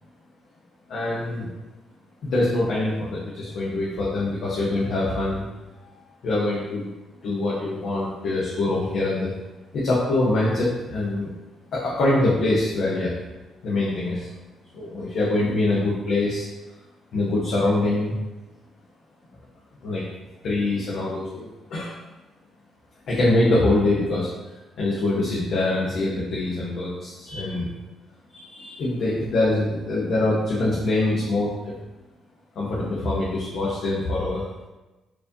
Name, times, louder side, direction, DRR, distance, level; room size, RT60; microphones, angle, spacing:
voice 1, 0.9-1.5 2.2-5.4 5.8-5.9 6.2-6.9 7.2-9.3 9.7-11.3 11.7-13.2 13.6-14.3 14.7-16.5 17.1-18.2 19.8-20.0 20.4-21.9 23.1-24.3 24.8-27.7 28.3-31.7 32.6-34.4, left 2 dB, 70° left, -7 dB, 0.9 m, -24 dB
4.6 x 2.6 x 2.8 m, 1.1 s
cardioid pair, 90°, 0 cm